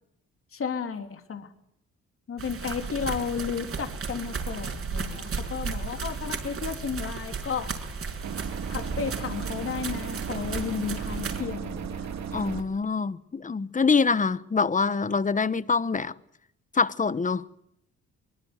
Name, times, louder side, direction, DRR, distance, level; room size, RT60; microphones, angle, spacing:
voice 1, 0.5-1.5 2.3-7.7 8.7-12.2, left 6 dB, 45° left, 3.2 m, -33 dB
sound 1, 2.4-11.4, right 5 dB, 50° right, 5.8 m, -35 dB
sound 2, 6.6-12.6, right 4 dB, 25° right, 2.9 m, -43 dB
sound 3, 8.2-12.6, right 7 dB, 65° right, 2.7 m, -36 dB
voice 2, 12.3-16.1 16.7-17.4, left 4 dB, 25° left, 1.1 m, -25 dB
23.5 x 22.0 x 8.1 m
cardioid pair, 90°, 30 cm